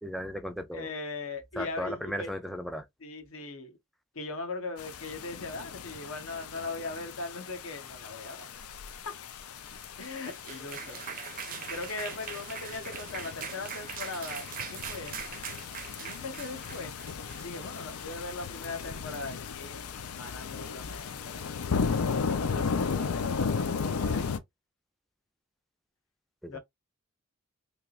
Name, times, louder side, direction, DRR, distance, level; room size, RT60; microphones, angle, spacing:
voice 1, 0.0-0.9 1.6-2.9 26.4-26.6, equal, ahead, 0.4 m, -36 dB
voice 2, 0.7-2.3 3.0-3.8 4.1-8.5 9.0-9.2 10.0-11.0 11.5-15.2 16.0-16.9 17.4-21.5 22.2-24.3 26.5-26.6, left 3 dB, 65° left, 1.0 m, -40 dB
sound 1, 4.8-24.4, left 5 dB, 90° left, 0.5 m, -35 dB
sound 2, 9.8-18.1, right 7 dB, 40° right, 0.6 m, -42 dB
3.4 x 2.8 x 2.4 m
head